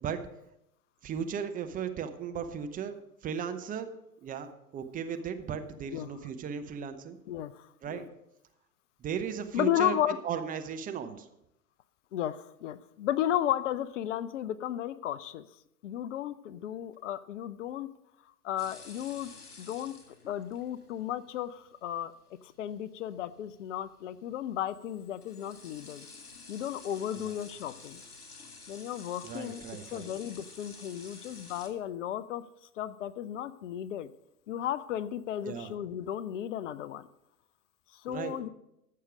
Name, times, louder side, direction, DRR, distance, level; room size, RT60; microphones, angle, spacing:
voice 1, 1.0-3.9 4.2-4.5 4.7-7.2 7.8-8.0 9.0-10.0 10.2-11.3 27.1-27.3 29.2-30.1 35.4-35.7 38.1-38.4, right 7 dB, 20° right, 7 dB, 0.8 m, -36 dB
voice 2, 7.3-8.0 9.5-10.2 12.1-15.4 15.8-17.9 18.4-19.3 19.6-19.9 20.3-22.1 22.4-26.1 26.5-28.0 28.7-29.6 29.9-32.4 32.8-34.1 34.5-37.1 37.9-38.5, left 11 dB, 55° left, 16 dB, 0.6 m, -34 dB
sound 1, 18.6-31.7, left 4 dB, 80° left, 2.2 m, -51 dB
14.5 x 6.6 x 5.0 m, 0.82 s
figure-of-eight pair, 100°, 44 cm